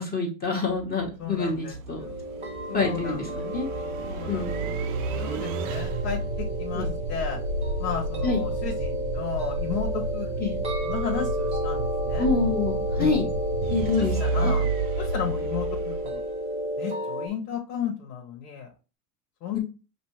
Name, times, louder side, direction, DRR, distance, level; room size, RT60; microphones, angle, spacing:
voice 1, 0.0-2.0 2.7-3.7 4.3-4.8 6.7-6.9 8.2-8.4 10.4-10.6 12.2-13.3 13.7-14.5 19.5-19.6, left 4 dB, 20° left, -1 dB, 1.4 m, -27 dB
sound 1, 0.6-16.6, right 3 dB, 50° right, 0.7 m, -31 dB
voice 2, 1.2-2.2 2.7-3.5 4.0-4.5 4.8-7.4 7.8-10.3 10.8-12.3 13.0-13.2 14.0-14.7 15.0-16.2 16.8-18.7 19.4-19.6, left 7 dB, 90° left, 0 dB, 1.4 m, -34 dB
sound 2, 2.0-17.3, equal, 15° right, 1.0 m, -32 dB
5.3 x 2.5 x 3.1 m, 0.31 s
supercardioid pair, 125°, 47 cm